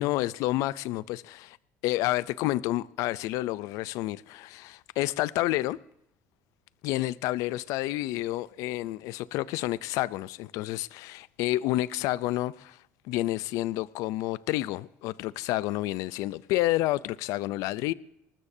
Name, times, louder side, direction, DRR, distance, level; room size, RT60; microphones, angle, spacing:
voice 1, 0.0-1.6 1.8-5.8 6.8-12.8 13.0-17.9, left 16 dB, 80° left, 0.4 m, -29 dB
27.0 x 13.0 x 2.7 m
cardioid pair, 125°, 6 cm